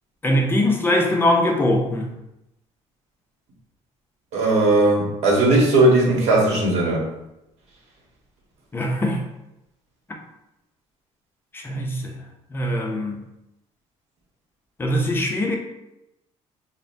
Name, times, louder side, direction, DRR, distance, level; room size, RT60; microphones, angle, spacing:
voice 1, 0.2-2.0 8.7-9.2 11.5-12.1 12.5-13.2 14.8-15.6, left 1 dB, 20° left, 1 dB, 0.6 m, -21 dB
voice 2, 4.3-7.0, right 2 dB, 65° right, -3 dB, 1.3 m, -17 dB
5.3 x 2.1 x 2.7 m, 0.89 s
cardioid pair, 150°, 12 cm